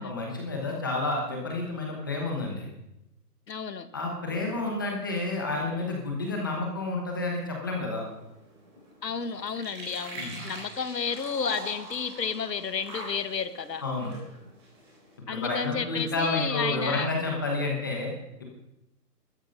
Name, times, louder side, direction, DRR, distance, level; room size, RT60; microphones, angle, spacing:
voice 1, 0.0-2.7 3.9-8.1 10.2-10.4 13.8-14.1 15.3-18.1, left 2 dB, 15° left, 0 dB, 1.1 m, -30 dB
voice 2, 3.5-3.9 9.0-13.8 15.3-17.1, left 6 dB, 75° left, 11 dB, 1.8 m, -32 dB
sound 1, 8.0-15.1, right 1 dB, 15° right, 4.1 m, -44 dB
14.5 x 13.0 x 5.4 m, 0.87 s
hypercardioid pair, 175°, 50 cm